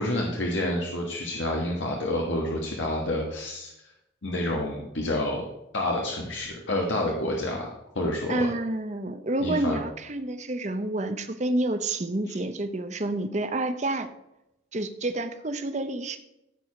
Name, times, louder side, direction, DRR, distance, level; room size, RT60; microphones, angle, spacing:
voice 1, 0.0-3.7 4.2-5.4 5.7-8.5 9.4-9.8 12.3-12.4, left 1 dB, 75° left, -1 dB, 1.5 m, -28 dB
voice 2, 8.3-14.1 14.7-16.2, right 2 dB, 35° right, 9 dB, 0.8 m, -29 dB
14.5 x 4.9 x 5.9 m, 0.88 s
head